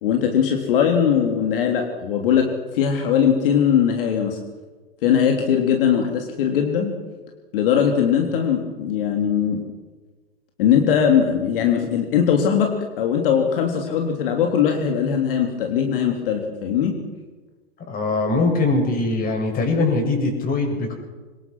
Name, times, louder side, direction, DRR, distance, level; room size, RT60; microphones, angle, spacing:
voice 1, 0.0-2.5 2.7-4.4 5.0-6.9 7.5-9.7 10.6-17.0, left 8 dB, 65° left, 3 dB, 3.2 m, -20 dB
voice 2, 17.9-20.9, left 3 dB, 30° left, 3 dB, 7.3 m, -21 dB
24.5 x 20.0 x 6.2 m, 1.3 s
hypercardioid pair, 115°, 30 cm